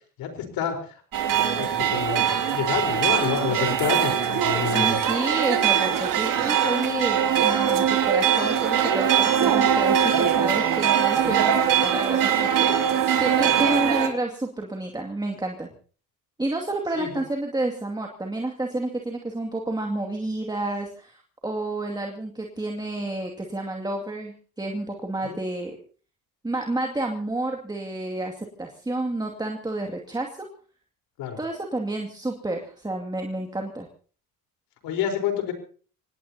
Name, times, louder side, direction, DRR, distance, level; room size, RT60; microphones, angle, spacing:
voice 1, 0.2-0.8 1.5-5.0 16.9-17.1 25.2-25.4 31.2-31.4 34.8-35.5, left 8 dB, 80° left, 5 dB, 4.4 m, -28 dB
sound 1, 1.1-14.1, right 8 dB, 65° right, 2.9 m, -22 dB
voice 2, 4.7-15.7 16.4-25.8 26.4-30.5 31.4-33.9, right 2 dB, 10° right, 2 dB, 2.4 m, -30 dB
26.0 x 18.5 x 2.9 m, 0.41 s
cardioid pair, 95°, 35 cm